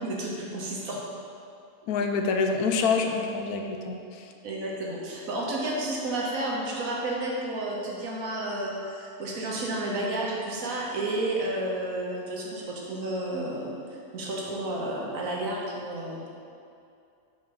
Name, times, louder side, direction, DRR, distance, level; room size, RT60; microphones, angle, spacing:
voice 1, 0.0-1.0 3.1-3.2 4.4-13.7 14.1-16.3, right 1 dB, 65° right, -3 dB, 1.4 m, -31 dB
voice 2, 1.9-4.3, left 4 dB, 80° left, 4 dB, 1.1 m, -26 dB
4.9 x 4.7 x 5.4 m, 2.5 s
omnidirectional pair, 1.6 m